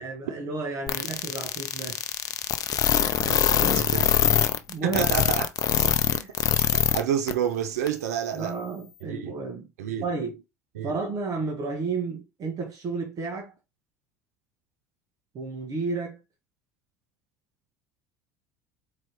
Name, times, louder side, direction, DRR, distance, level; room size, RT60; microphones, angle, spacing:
voice 1, 0.0-2.0 2.8-5.0 6.1-6.4 8.3-9.7 10.0-10.4 10.8-13.5 15.3-16.2, right 4 dB, 45° right, 1.1 m, -33 dB
sound 1, 0.9-7.0 7.3-7.4 7.9-8.0, left 10 dB, 45° left, 0.6 m, -23 dB
voice 2, 3.2-4.1 4.8-5.5 5.7-5.9 6.7-8.5 9.0-9.4 9.8-10.1 10.8-11.0, right 9 dB, 85° right, 0.5 m, -29 dB
4.4 x 3.1 x 3.0 m
hypercardioid pair, 80°, 8 cm